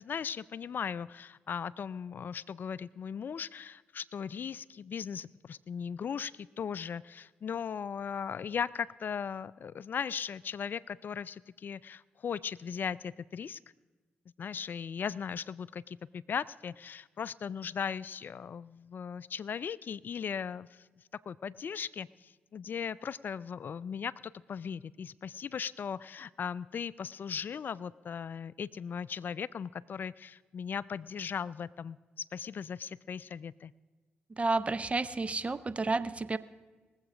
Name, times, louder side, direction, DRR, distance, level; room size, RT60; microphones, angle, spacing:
voice 1, 0.0-13.6 14.4-20.8 21.3-33.7, left 7 dB, 55° left, 19 dB, 0.3 m, -38 dB
voice 2, 34.3-36.4, right 3 dB, 35° right, 16 dB, 0.7 m, -31 dB
21.0 x 7.9 x 5.0 m, 1.3 s
supercardioid pair, 50°, 4 cm